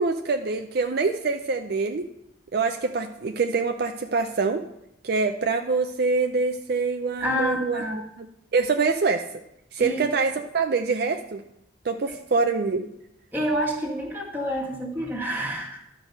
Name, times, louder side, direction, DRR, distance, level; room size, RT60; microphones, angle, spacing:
voice 1, 0.0-2.1 2.5-4.6 5.0-8.3 8.5-9.2 9.7-11.4 11.8-12.8, right 4 dB, 55° right, 5 dB, 0.4 m, -25 dB
voice 2, 7.2-8.0 9.8-10.0 12.1-12.2 13.3-15.8, equal, 10° right, -2 dB, 1.6 m, -28 dB
11.5 x 4.8 x 6.5 m, 0.81 s
head